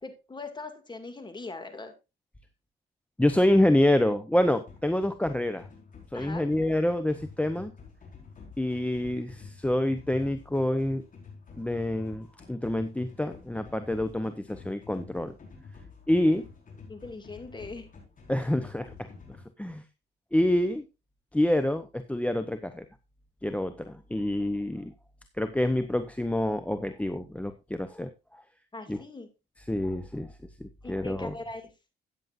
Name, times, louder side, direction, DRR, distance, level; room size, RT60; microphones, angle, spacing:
voice 1, 0.0-1.9 6.1-6.4 16.9-17.9 28.7-29.3 30.8-31.7, left 3 dB, 20° left, 7 dB, 2.3 m, -40 dB
voice 2, 3.2-5.7 6.1-7.7 8.6-11.0 11.6-15.3 16.1-16.5 18.3-19.1 19.6-19.8 20.3-20.8 21.3-22.8 23.4-24.9 25.4-28.4 28.9-29.0 29.7-30.3 30.9-31.3, left 1 dB, 5° left, 10 dB, 0.8 m, -27 dB
sound 1, 4.7-19.4, left 4 dB, 40° left, 5.0 m, -49 dB
13.5 x 9.0 x 2.6 m, 0.25 s
cardioid pair, 90°, 20 cm